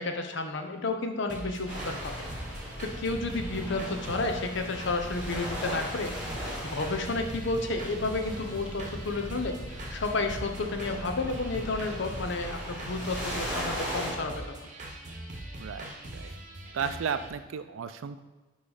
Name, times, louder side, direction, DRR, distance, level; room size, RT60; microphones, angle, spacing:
voice 1, 0.0-2.3 2.8-9.6 9.9-14.3, left 3 dB, 65° left, 5 dB, 0.7 m, -31 dB
sound 1, 1.3-17.3, right 1 dB, 40° right, 1.0 m, -42 dB
sound 2, 1.7-14.1, equal, 5° right, 2.0 m, -38 dB
sound 3, 2.3-5.3 5.9-6.1 6.6-6.9 7.6-8.0, right 1 dB, 25° left, 1.9 m, -53 dB
voice 2, 15.6-16.3 16.7-18.2, right 6 dB, 85° right, 11 dB, 0.4 m, -34 dB
9.5 x 3.2 x 3.9 m, 1.3 s
head